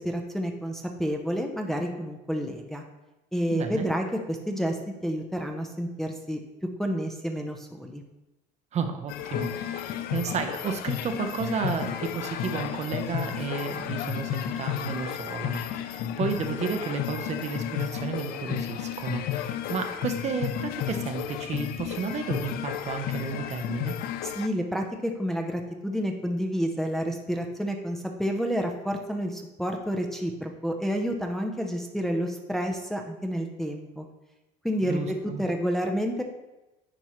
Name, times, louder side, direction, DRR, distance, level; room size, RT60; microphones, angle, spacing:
voice 1, 0.0-2.8 3.3-4.8 5.0-6.4 6.8-8.0 24.2-34.1 34.6-35.0 35.4-36.2, equal, ahead, 2 dB, 0.6 m, -29 dB
voice 2, 3.5-3.9 8.7-24.0 34.8-35.4, right 5 dB, 40° right, 6 dB, 0.8 m, -32 dB
sound 1, 9.1-24.5, left 10 dB, 65° left, 0.5 m, -32 dB
10.0 x 4.5 x 3.1 m, 1.0 s
cardioid pair, 115°, 17 cm